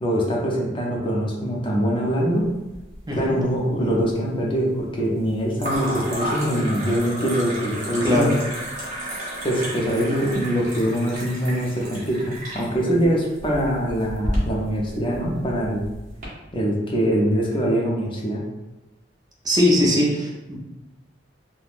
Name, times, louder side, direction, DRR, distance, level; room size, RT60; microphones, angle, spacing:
voice 1, 0.0-2.5 3.1-8.3 9.4-15.8 16.5-18.4, equal, 25° left, -2 dB, 0.5 m, -23 dB
sound 1, 2.4-3.2 3.5-4.1 5.6-16.3, equal, 40° right, 0.8 m, -32 dB
voice 2, 19.4-20.6, left 1 dB, 20° right, -3 dB, 0.5 m, -20 dB
3.3 x 2.2 x 2.4 m, 1.0 s
head